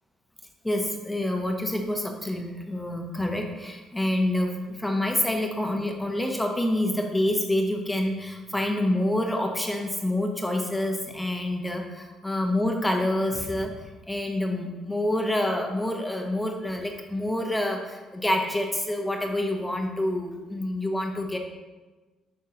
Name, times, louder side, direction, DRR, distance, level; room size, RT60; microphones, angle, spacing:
voice 1, 0.6-21.4, left 1 dB, 10° left, 3 dB, 0.8 m, -27 dB
8.8 x 6.1 x 2.9 m, 1.2 s
cardioid pair, 120°, 0 cm